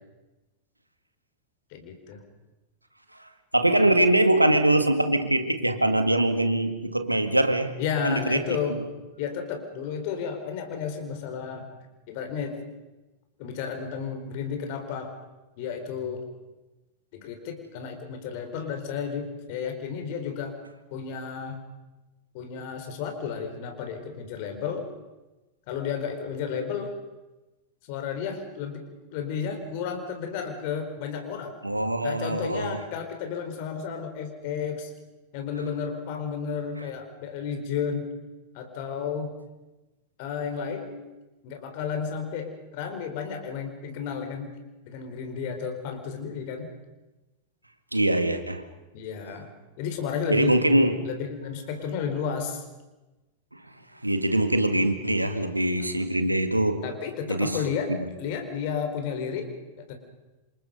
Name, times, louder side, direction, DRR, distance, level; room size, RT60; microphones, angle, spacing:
voice 1, 1.7-2.2 7.8-8.8 9.2-11.7 12.1-12.6 13.4-15.1 15.6-16.2 17.1-20.6 20.9-21.6 22.3-24.9 25.7-26.9 27.9-31.5 32.0-34.9 35.3-38.2 38.5-39.3 40.2-41.0 41.4-44.6 44.8-46.7 48.9-49.5 49.8-50.6 51.0-52.6 55.8-55.9 56.8-59.9, left 6 dB, 45° left, 4.6 m, -32 dB
voice 2, 3.1-7.8 8.0-8.8 31.6-32.8 47.9-48.6 50.3-51.1 53.5-53.6 54.0-56.9 57.3-58.1, right 1 dB, 85° right, 1.8 m, -23 dB
28.0 x 27.0 x 5.3 m
figure-of-eight pair, 90°, 0 cm